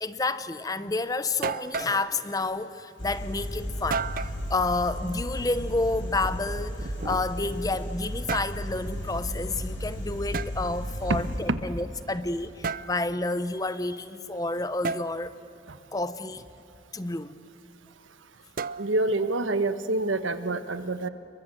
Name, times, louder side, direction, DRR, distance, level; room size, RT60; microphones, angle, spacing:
voice 1, 0.0-15.3 15.9-16.5 16.9-17.4, left 2 dB, 20° left, 13 dB, 0.7 m, -30 dB
sound 1, 0.9-1.0 1.4-2.0 3.9-4.4 6.1-7.5 8.1-8.6 10.3-10.5 12.6-12.9 14.8-15.1 18.6-19.1, right 5 dB, 45° right, 0.5 m, -32 dB
sound 2, 3.0-11.4, equal, 80° left, 5.9 m, -34 dB
voice 2, 18.8-21.1, right 2 dB, 85° right, 10 dB, 1.2 m, -27 dB
28.5 x 22.5 x 7.7 m, 2.9 s
head